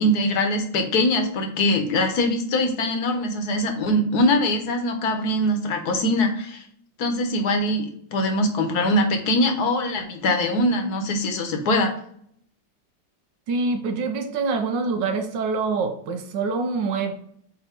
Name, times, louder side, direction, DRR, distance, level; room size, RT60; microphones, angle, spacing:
voice 1, 0.0-6.6 7.0-11.9, left 1 dB, 60° left, 4 dB, 1.4 m, -22 dB
voice 2, 13.5-17.1, right 4 dB, 75° right, 6 dB, 1.4 m, -25 dB
8.1 x 2.9 x 4.4 m, 0.64 s
omnidirectional pair, 2.1 m